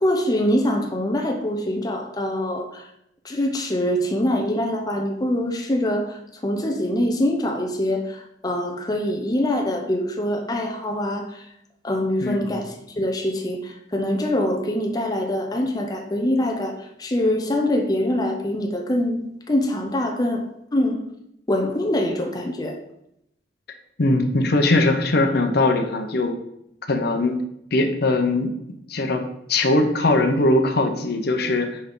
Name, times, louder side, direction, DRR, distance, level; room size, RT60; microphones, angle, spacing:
voice 1, 0.0-2.9 3.2-11.5 11.8-16.7 17.0-20.4 20.7-21.0 21.5-22.8, left 1 dB, 20° left, 2 dB, 0.6 m, -24 dB
voice 2, 12.2-12.6 24.0-26.3 26.9-27.4 27.7-28.5 28.9-29.2 29.5-31.8, left 2 dB, 65° left, 5 dB, 0.8 m, -20 dB
5.9 x 5.2 x 3.8 m, 0.78 s
head